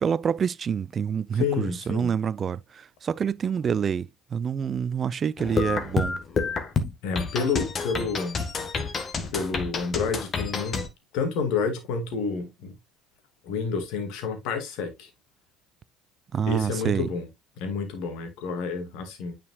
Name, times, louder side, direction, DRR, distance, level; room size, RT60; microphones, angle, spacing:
voice 1, 0.0-6.2 16.3-17.1, right 7 dB, 40° right, 0.4 m, -27 dB
voice 2, 1.4-2.1 7.0-8.4 9.3-10.9 11.1-12.8 13.4-15.1 16.5-17.3 17.6-19.3, left 5 dB, 60° left, 2.2 m, -29 dB
sound 1, 5.4-10.9, left 5 dB, 35° left, 1.5 m, -29 dB
9.4 x 5.1 x 2.4 m
hypercardioid pair, 60°, 0 cm